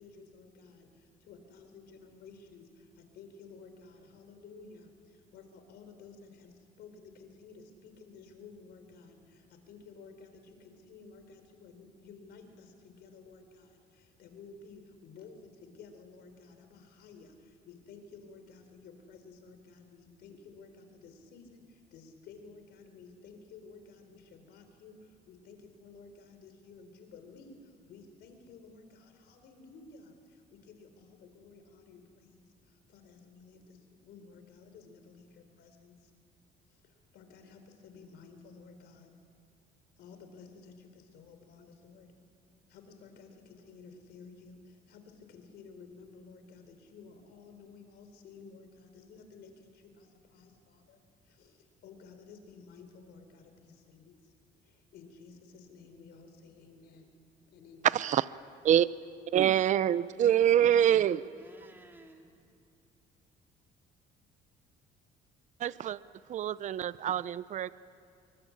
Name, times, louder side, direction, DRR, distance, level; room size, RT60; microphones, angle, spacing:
voice 1, 0.0-36.1 36.7-39.1 40.0-42.1 42.7-54.3 54.6-57.2 57.5-57.9, left 4 dB, 75° left, 7 dB, 4.2 m, -54 dB
voice 2, 57.8-58.2 58.6-58.9 59.3-61.2 65.6-66.0 66.3-67.7, right 10 dB, 45° right, 17 dB, 0.6 m, -25 dB
voice 3, 60.2-62.3, right 2 dB, 10° right, 1 dB, 3.5 m, -56 dB
26.5 x 23.5 x 8.7 m, 2.4 s
cardioid pair, 110°, 17 cm